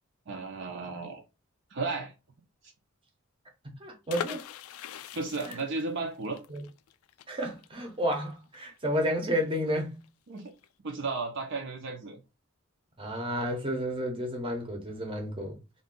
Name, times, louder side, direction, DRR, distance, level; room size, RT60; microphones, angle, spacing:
voice 1, 0.3-1.2 1.7-2.1 5.1-6.4 10.3-10.5 10.8-12.2, right 3 dB, 55° right, 0.5 m, -34 dB
voice 2, 3.6-4.5 5.5-5.6 6.5-6.6 7.3-10.0 13.0-15.6, equal, 25° right, 0.8 m, -31 dB
sound 1, 4.1-9.7 10.0-10.1 10.4-10.7, left 9 dB, 80° left, 0.3 m, -42 dB
2.5 x 2.2 x 3.6 m
head